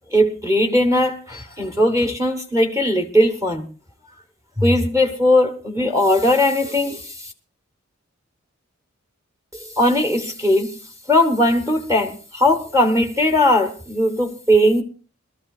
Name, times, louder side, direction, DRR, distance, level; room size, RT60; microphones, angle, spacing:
voice 1, 0.1-3.7 4.6-7.3 9.5-10.7 11.1-14.8, left 1 dB, 15° right, 1.1 m, -18 dB
23.0 x 13.5 x 2.4 m
head